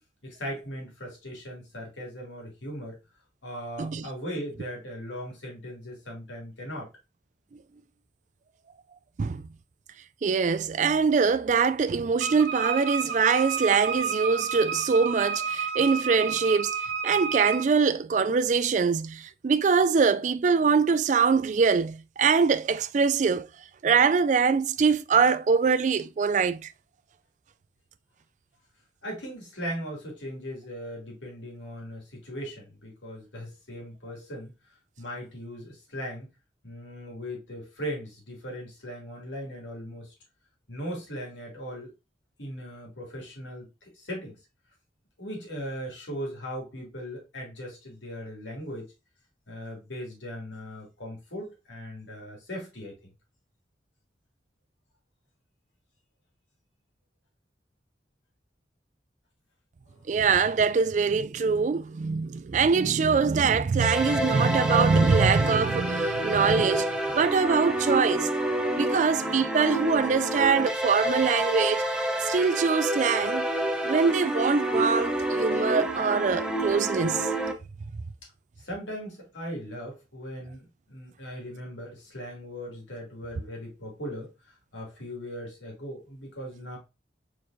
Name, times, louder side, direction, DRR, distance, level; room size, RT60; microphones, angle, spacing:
voice 1, 0.2-3.0 3.4-6.9 29.0-34.5 35.0-36.3 36.6-40.1 40.7-41.9 42.4-44.4 45.2-48.9 49.5-52.9 59.9-60.1 78.6-86.8, equal, 85° left, 2.6 m, -38 dB
voice 2, 10.2-23.5 23.8-26.7 60.1-68.3 68.7-71.9 72.2-73.5 73.8-77.3, right 5 dB, 40° right, 0.3 m, -23 dB
Wind instrument woodwind instrument, 12.2-17.7, right 6 dB, 55° right, 1.1 m, -31 dB
sound 1, 63.8-77.5, right 1 dB, 5° right, 0.7 m, -28 dB
4.6 x 4.4 x 2.6 m
head